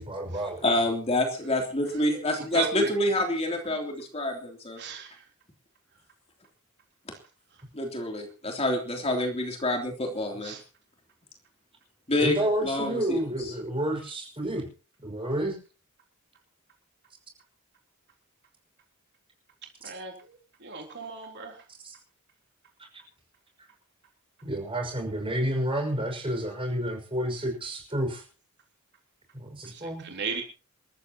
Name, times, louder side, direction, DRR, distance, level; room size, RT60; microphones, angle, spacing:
voice 1, 0.0-0.6 12.2-14.7 15.0-15.5 21.8-21.9 24.4-28.2 29.3-30.0, right 1 dB, 25° right, 3 dB, 5.9 m, -30 dB
voice 2, 0.6-4.8 7.7-10.5 12.1-12.4 12.6-13.2, left 1 dB, 30° left, 2 dB, 3.2 m, -27 dB
voice 3, 2.5-2.9 4.8-5.1 10.5-10.6 19.8-20.1 20.6-21.5 30.0-30.4, right 4 dB, 55° right, 2 dB, 3.6 m, -33 dB
27.5 x 14.0 x 3.0 m, 0.35 s
head